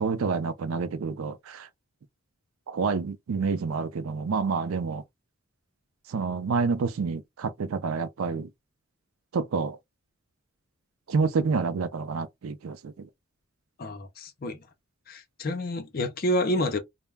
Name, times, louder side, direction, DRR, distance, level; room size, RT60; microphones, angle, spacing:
voice 1, 0.0-1.7 2.7-5.0 6.1-8.5 9.3-9.8 11.1-13.1, right 5 dB, 75° right, 0.4 m, -28 dB
voice 2, 13.8-14.6 15.1-16.8, left 1 dB, 45° left, 0.5 m, -29 dB
2.2 x 2.1 x 3.2 m
head